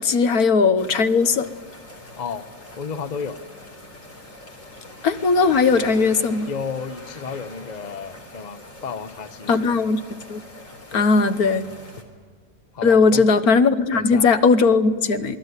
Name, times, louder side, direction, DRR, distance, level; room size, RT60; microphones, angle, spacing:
voice 1, 0.0-1.5 5.0-6.5 9.5-10.0 10.3-10.4 10.9-11.6 12.8-15.4, left 4 dB, 65° left, 11 dB, 1.6 m, -18 dB
sound 1, 0.8-12.0, left 1 dB, 50° left, 4.0 m, -43 dB
voice 2, 2.2-2.5 2.8-3.4 6.5-9.8 10.9-11.1 12.7-13.3 13.9-14.3, left 6 dB, 30° left, 11 dB, 0.9 m, -32 dB
27.5 x 20.0 x 9.6 m, 1.5 s
omnidirectional pair, 1.7 m